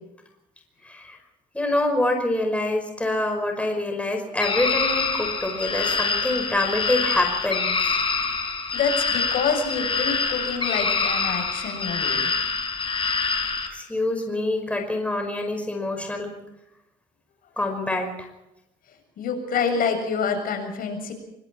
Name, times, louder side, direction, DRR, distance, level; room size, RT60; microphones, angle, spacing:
voice 1, 0.8-1.2 1.5-7.7 13.7-16.3 17.6-18.3, left 2 dB, 5° left, 3 dB, 5.3 m, -26 dB
sound 1, 4.4-13.7, left 4 dB, 30° left, 5.7 m, -25 dB
voice 2, 8.7-12.3 19.2-21.1, left 5 dB, 60° left, 5 dB, 7.3 m, -27 dB
25.0 x 24.5 x 4.5 m, 0.89 s
cardioid pair, 110°, 17 cm